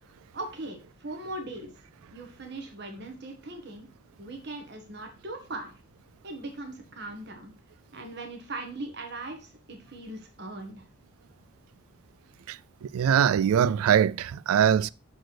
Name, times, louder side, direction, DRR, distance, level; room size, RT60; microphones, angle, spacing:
voice 1, 0.3-1.7 2.1-3.9 4.2-5.7 6.2-7.5 7.9-10.8, right 2 dB, 50° right, 1.3 m, -39 dB
voice 2, 12.9-14.9, right 8 dB, 85° right, 0.3 m, -22 dB
6.1 x 4.5 x 4.5 m
head